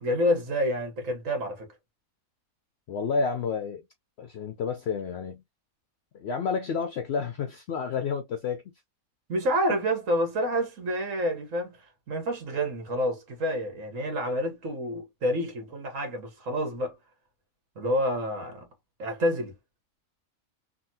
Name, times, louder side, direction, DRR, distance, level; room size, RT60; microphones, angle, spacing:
voice 1, 0.0-1.7 9.3-11.8 12.1-16.9 17.8-18.7 19.0-19.5, equal, 65° right, 1.5 m, -28 dB
voice 2, 2.9-3.8 4.2-5.4 6.1-8.7, left 5 dB, 60° left, 0.7 m, -30 dB
3.5 x 2.3 x 2.7 m
omnidirectional pair, 1.5 m